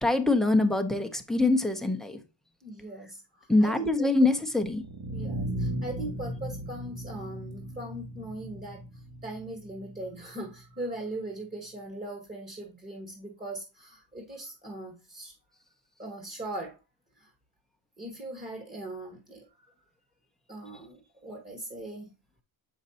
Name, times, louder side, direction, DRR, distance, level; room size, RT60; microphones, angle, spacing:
voice 1, 0.0-2.2 3.5-4.8, left 2 dB, ahead, 0.6 m, -24 dB
voice 2, 2.6-4.1 5.1-15.3 16.0-16.8 17.2-17.3 18.0-19.7 20.5-22.1, right 2 dB, 15° right, 1.2 m, -40 dB
sound 1, 4.7-10.7, right 1 dB, 65° right, 1.4 m, -37 dB
7.2 x 5.2 x 2.7 m
cardioid pair, 155°, 47 cm